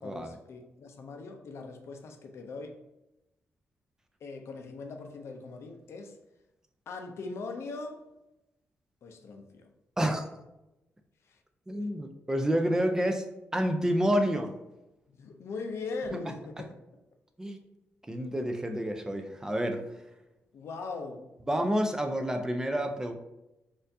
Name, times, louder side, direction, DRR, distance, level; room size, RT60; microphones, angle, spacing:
voice 1, 0.0-2.8 4.2-6.2 6.9-8.1 9.0-9.7 11.3-11.4 15.1-16.8 20.5-21.3, left 3 dB, 70° left, 4 dB, 0.5 m, -40 dB
voice 2, 11.7-13.3 13.5-14.5 17.4-17.6 18.1-19.8 21.5-23.1, equal, 10° right, 5 dB, 0.4 m, -28 dB
4.3 x 2.5 x 2.6 m, 0.93 s
cardioid pair, 120°, 5 cm